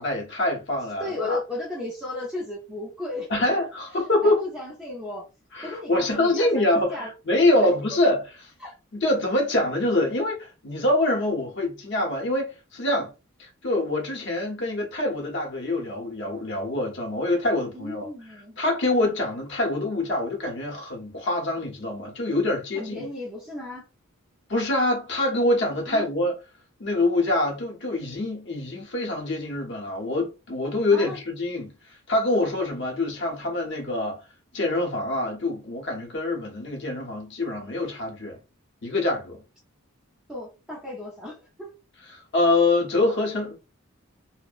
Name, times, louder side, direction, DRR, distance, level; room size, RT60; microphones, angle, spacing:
voice 1, 0.0-1.4 3.3-4.4 5.5-8.2 8.9-13.1 13.4-18.1 18.6-23.1 24.5-26.3 26.8-31.7 32.1-34.2 34.5-38.4 38.8-39.4 42.0-43.6, left 2 dB, 55° left, 0.8 m, -25 dB
voice 2, 1.0-3.3 4.2-5.2 5.6-7.1 7.6-8.0 8.6-8.7 17.7-18.6 22.7-23.9 25.9-26.0 30.9-31.2 40.3-41.7, left 2 dB, 5° right, 0.6 m, -35 dB
2.6 x 2.0 x 2.4 m
head